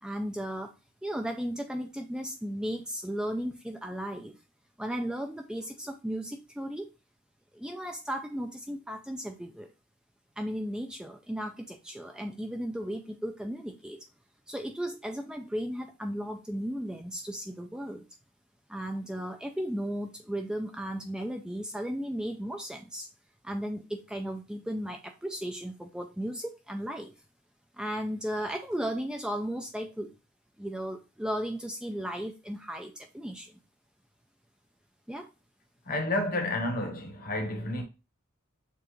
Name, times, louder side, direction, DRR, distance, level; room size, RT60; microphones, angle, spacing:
voice 1, 0.0-0.7 1.0-4.4 4.8-6.9 7.5-9.7 10.4-14.0 14.5-18.0 18.7-23.1 23.4-27.1 27.8-30.1 30.6-33.6 35.1-35.3, equal, 5° right, 0.3 m, -35 dB
voice 2, 35.8-37.8, left 1 dB, 45° left, 1.1 m, -30 dB
6.8 x 2.4 x 3.0 m
head